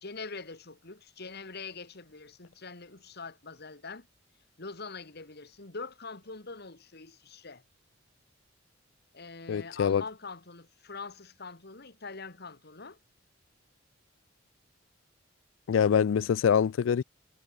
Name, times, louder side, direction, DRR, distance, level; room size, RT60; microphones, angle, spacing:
voice 1, 0.0-4.1 4.6-7.6 9.1-13.0, left 4 dB, 55° left, 2.5 m, -43 dB
voice 2, 9.5-10.0 15.7-17.0, left 7 dB, 75° left, 0.4 m, -24 dB
head